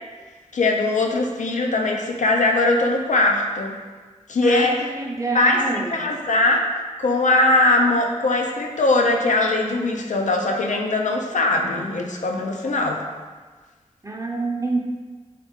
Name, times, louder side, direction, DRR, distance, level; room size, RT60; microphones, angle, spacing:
voice 1, 0.5-3.8 4.3-4.7 5.3-5.6 5.9-6.7 7.0-13.0, left 2 dB, 70° left, 1 dB, 0.4 m, -20 dB
voice 2, 4.4-6.0 14.0-14.8, right 3 dB, 25° right, -1 dB, 0.5 m, -27 dB
3.3 x 2.3 x 3.0 m, 1.4 s
wide cardioid pair, 50°, 13 cm